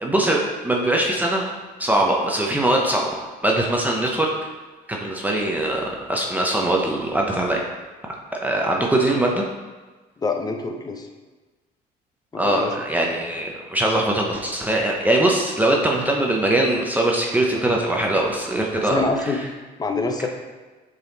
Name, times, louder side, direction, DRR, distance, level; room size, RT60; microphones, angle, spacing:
voice 1, 0.0-1.5 1.8-3.1 3.4-4.3 4.9-7.6 8.3-9.4 12.4-19.4, right 1 dB, 10° right, -1 dB, 0.7 m, -21 dB
voice 2, 10.2-11.1 12.3-12.7 18.8-19.4 19.8-20.3, left 4 dB, 25° left, 4 dB, 0.7 m, -25 dB
6.8 x 4.1 x 3.9 m, 1.3 s
cardioid pair, 110°, 17 cm